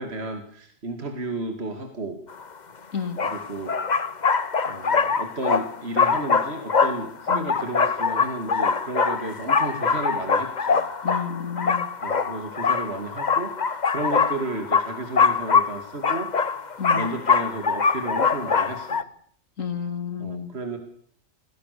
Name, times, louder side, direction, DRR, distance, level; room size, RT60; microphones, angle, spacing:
voice 1, 0.0-2.2 3.2-3.7 4.6-10.9 12.0-16.3 16.9-19.0 20.2-20.8, right 2 dB, 50° right, 5 dB, 2.7 m, -33 dB
sound 1, 2.4-2.5 3.2-19.0, left 5 dB, 35° left, 1.1 m, -23 dB
voice 2, 11.0-11.9 16.8-17.1 19.6-20.5, left 7 dB, 75° left, 9 dB, 2.8 m, -31 dB
27.0 x 20.0 x 6.8 m, 0.64 s
omnidirectional pair, 1.4 m